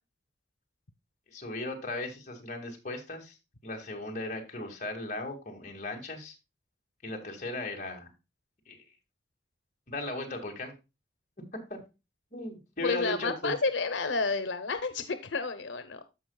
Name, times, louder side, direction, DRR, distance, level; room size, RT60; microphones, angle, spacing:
voice 1, 1.3-3.3 3.6-6.3 7.0-8.1 8.7-8.8 9.9-10.7 11.7-11.8 12.3-13.6, left 1 dB, 40° left, 1 dB, 2.0 m, -37 dB
voice 2, 12.8-16.0, left 4 dB, 90° left, 11 dB, 0.8 m, -30 dB
14.0 x 5.3 x 2.3 m, 0.26 s
head